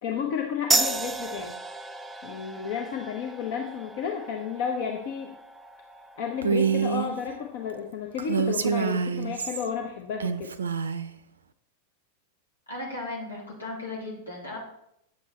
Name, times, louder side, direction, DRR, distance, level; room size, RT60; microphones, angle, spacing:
voice 1, 0.0-1.6 2.2-5.3 6.2-10.5, left 7 dB, 50° left, 3 dB, 1.0 m, -32 dB
sound 1, 0.7-7.8, right 3 dB, 10° right, 0.5 m, -33 dB
Female speech woman speaking, 6.4-7.1 8.2-9.7 10.2-11.1, right 6 dB, 70° right, 0.6 m, -26 dB
voice 2, 12.7-14.6, left 2 dB, 80° left, -3 dB, 3.4 m, -36 dB
9.9 x 7.8 x 4.2 m, 0.76 s
figure-of-eight pair, 90°, 0 cm